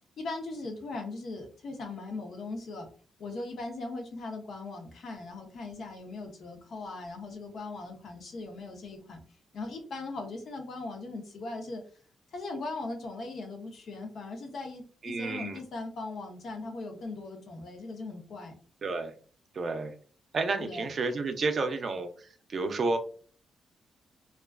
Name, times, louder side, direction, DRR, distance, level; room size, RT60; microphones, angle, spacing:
voice 1, 0.2-2.9 3.2-9.2 9.5-11.8 12.3-18.6 20.6-20.9, left 3 dB, 70° left, 3 dB, 0.6 m, -39 dB
voice 2, 15.0-15.6 18.8-19.1 19.5-19.9 20.3-22.1 22.5-23.0, right 3 dB, 55° right, 7 dB, 0.4 m, -30 dB
2.4 x 2.3 x 2.3 m, 0.43 s
cardioid pair, 85°, 0 cm